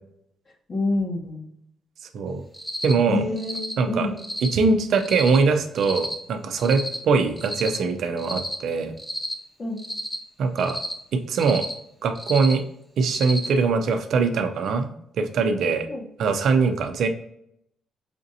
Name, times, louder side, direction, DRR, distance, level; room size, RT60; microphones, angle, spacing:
voice 1, 0.7-1.4 3.1-4.1 9.6-9.8 15.9-16.0, left 2 dB, 45° left, -4 dB, 1.1 m, -27 dB
Cricket, 2.5-2.9 3.4-3.7 4.2-4.5 5.0-5.4 5.8-6.1 6.6-7.0 7.4-7.8 8.2-8.6 9.0-9.3 9.8-10.2 10.6-10.9 11.3-11.7 12.1-12.5 13.0-13.5, left 1 dB, 10° left, 0.9 m, -31 dB
voice 2, 2.8-3.2 3.8-4.1 4.4-8.9 10.4-10.8 11.1-11.7 12.0-12.6 13.0-14.9 15.2-15.9 16.2-17.1, right 4 dB, 70° right, 7 dB, 0.6 m, -22 dB
5.1 x 2.6 x 2.7 m, 0.73 s
cardioid pair, 90°, 0 cm